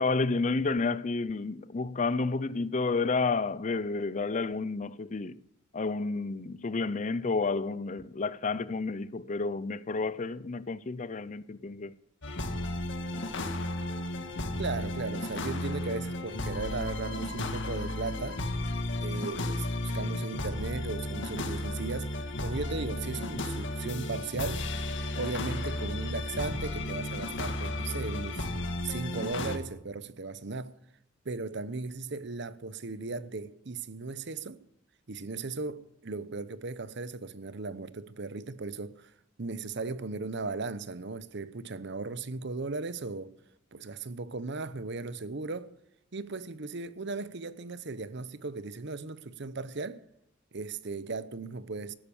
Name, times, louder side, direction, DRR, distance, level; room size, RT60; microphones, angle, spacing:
voice 1, 0.0-5.4 5.7-11.9, left 3 dB, 35° left, 0.5 m, -30 dB
sound 1, 12.2-29.6, left 1 dB, 60° left, 1.8 m, -34 dB
voice 2, 14.6-18.4 19.0-24.7 25.1-28.5 28.8-30.7 31.2-34.6 35.1-39.1 39.4-43.3 43.7-45.7 46.1-50.0 50.5-51.9, right 3 dB, 60° right, 0.8 m, -37 dB
14.5 x 12.5 x 7.0 m
head